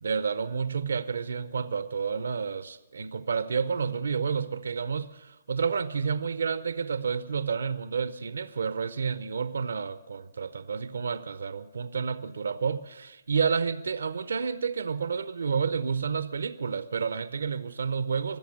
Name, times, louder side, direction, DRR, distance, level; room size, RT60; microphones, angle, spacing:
voice 1, 0.0-18.4, right 6 dB, 70° right, 0.6 m, -30 dB
25.0 x 8.3 x 6.4 m
figure-of-eight pair, 130°, 0 cm